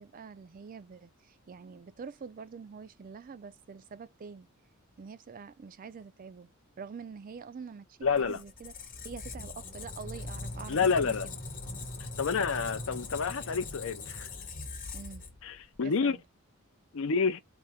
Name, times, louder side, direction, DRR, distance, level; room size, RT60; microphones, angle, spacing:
voice 1, 0.0-4.5 5.0-6.5 6.8-8.7 9.0-11.4 14.9-15.2 15.8-16.2, right 5 dB, 40° right, 0.3 m, -46 dB
voice 2, 8.0-8.4 10.7-11.3 12.2-14.3 15.4-16.2 16.9-17.4, left 5 dB, 65° left, 0.6 m, -29 dB
Squeak, 8.1-15.8, left 3 dB, 40° left, 1.0 m, -41 dB
4.2 x 2.1 x 3.4 m
head